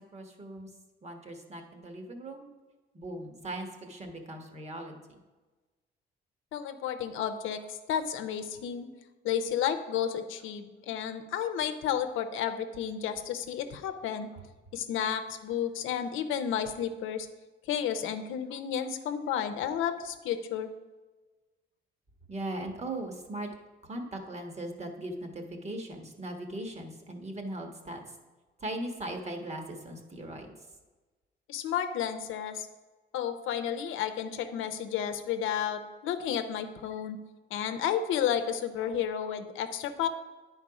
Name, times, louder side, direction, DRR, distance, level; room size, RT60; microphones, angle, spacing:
voice 1, 0.1-0.7 1.0-2.5 2.9-5.2 22.3-23.5 23.8-28.0 28.6-30.5, right 1 dB, 35° right, 4 dB, 1.4 m, -39 dB
voice 2, 6.5-8.9 9.2-14.3 14.7-17.3 17.7-20.7 31.5-32.7 33.1-37.2 37.5-40.1, left 9 dB, 90° left, 8 dB, 0.7 m, -32 dB
9.7 x 4.6 x 4.8 m, 1.2 s
cardioid pair, 90°, 20 cm